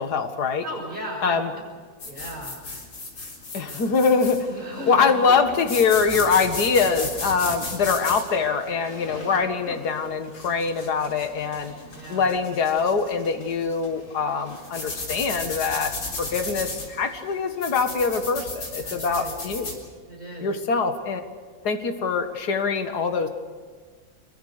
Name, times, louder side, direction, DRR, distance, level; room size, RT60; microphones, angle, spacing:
voice 1, 0.0-0.6 1.2-1.5 3.5-4.5 4.9-11.7 12.1-19.8 20.4-21.2 21.6-23.3, left 5 dB, 50° left, 7 dB, 2.1 m, -23 dB
voice 2, 0.6-1.6 2.1-2.6 3.6-3.8 4.5-5.1 9.1-9.6 11.9-12.3 18.8-19.4 20.1-20.5, equal, 20° right, -1 dB, 7.0 m, -36 dB
sound 1, 2.0-19.8, left 3 dB, 80° left, 4.8 m, -35 dB
26.0 x 22.5 x 6.7 m, 1.5 s
omnidirectional pair, 2.2 m